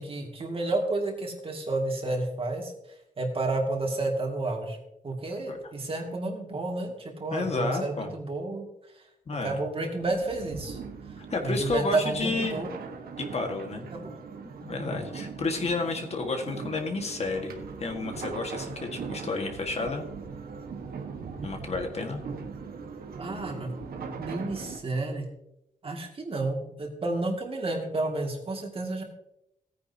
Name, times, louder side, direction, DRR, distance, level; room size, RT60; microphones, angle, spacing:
voice 1, 0.0-2.7 3.2-4.8 5.0-8.7 9.0-9.1 9.4-10.8 11.4-12.7 13.9-14.1 14.7-15.0 23.1-23.7 24.2-25.3 25.8-29.0, right 2 dB, 40° right, 1 dB, 2.4 m, -31 dB
voice 2, 7.3-8.1 9.3-9.6 11.2-12.6 13.2-13.9 14.6-17.5 17.8-20.1 21.4-22.2, left 3 dB, 45° left, 3 dB, 1.7 m, -31 dB
sound 1, 10.0-24.8, right 5 dB, 80° right, 1.5 m, -40 dB
17.0 x 9.8 x 2.9 m, 0.83 s
wide cardioid pair, 135°, 15 cm